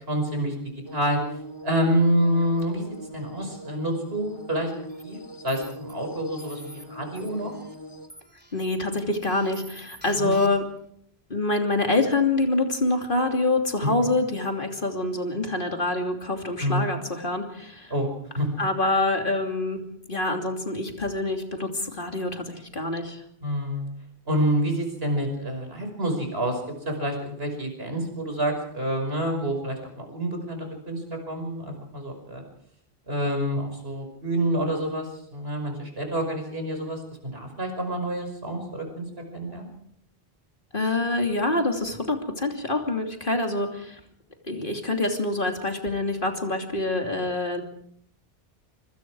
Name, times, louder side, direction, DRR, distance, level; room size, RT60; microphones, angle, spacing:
voice 1, 0.1-1.2 1.6-2.9 3.1-4.7 5.0-5.2 5.4-7.5 10.2-10.3 13.8-13.9 16.6-16.9 17.9-18.1 18.4-18.5 23.4-23.9 24.3-26.6 26.9-32.4 33.1-39.1 39.3-39.7, right 1 dB, 70° right, 3 dB, 5.8 m, -27 dB
sound 1, 0.8-8.1, left 1 dB, 25° left, 2.5 m, -41 dB
sound 2, 4.9-5.0 5.5-5.9 6.4-6.8 7.2-7.8 8.1-8.7 9.2-10.8, right 1 dB, 10° right, 2.8 m, -48 dB
voice 2, 8.5-10.6 11.3-17.9 18.6-19.8 20.1-23.2 40.7-44.0 44.5-47.6, left 2 dB, 55° left, 4 dB, 3.1 m, -26 dB
25.5 x 25.0 x 4.8 m, 0.67 s
omnidirectional pair, 1.0 m